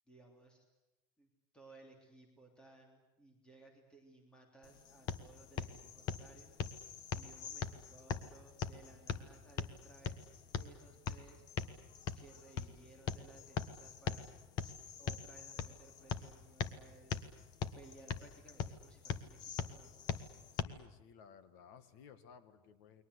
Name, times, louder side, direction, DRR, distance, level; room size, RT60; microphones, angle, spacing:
voice 1, 0.1-0.8 1.2-6.5 7.1-10.2 10.5-11.4 12.1-14.3 15.0-17.2 17.7-20.0, right 3 dB, 5° left, 2 dB, 3.2 m, -60 dB
sound 1, 4.6-20.6, left 7 dB, 30° left, 1.3 m, -42 dB
voice 2, 20.5-23.0, left 7 dB, 55° left, 12 dB, 2.0 m, -58 dB
29.5 x 22.5 x 8.3 m, 0.97 s
supercardioid pair, 180°, 13 cm